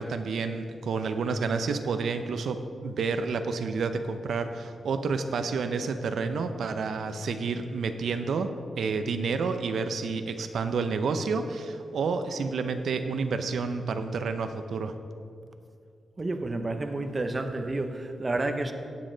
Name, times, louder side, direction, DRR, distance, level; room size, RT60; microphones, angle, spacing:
voice 1, 0.0-14.9, right 4 dB, 75° right, 8 dB, 0.6 m, -30 dB
voice 2, 16.2-18.7, right 2 dB, 25° right, 7 dB, 0.6 m, -30 dB
16.5 x 7.5 x 3.8 m, 2.3 s
wide cardioid pair, 160°, 0 cm